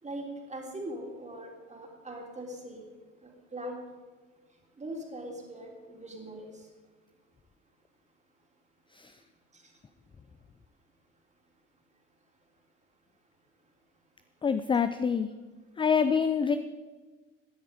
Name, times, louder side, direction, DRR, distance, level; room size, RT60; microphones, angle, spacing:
voice 1, 0.0-2.9 3.2-3.8 4.8-6.7 9.5-9.7, right 1 dB, 20° right, 1 dB, 3.2 m, -41 dB
voice 2, 14.4-15.3 15.8-16.6, left 6 dB, 15° left, 11 dB, 0.5 m, -26 dB
16.0 x 10.0 x 5.2 m, 1.3 s
figure-of-eight pair, 65°, 37 cm